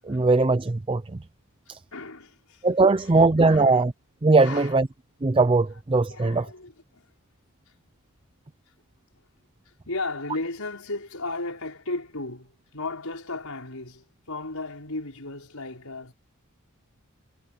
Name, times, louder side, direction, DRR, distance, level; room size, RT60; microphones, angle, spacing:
voice 1, 0.0-1.0 1.7-1.8 2.6-3.9 4.2-4.9 5.2-6.5, right 3 dB, 25° right, 0.5 m, -20 dB
voice 2, 1.9-2.6 2.9-3.8 4.4-4.8 6.1-7.0 9.9-16.1, left 2 dB, 75° left, 5.1 m, -35 dB
head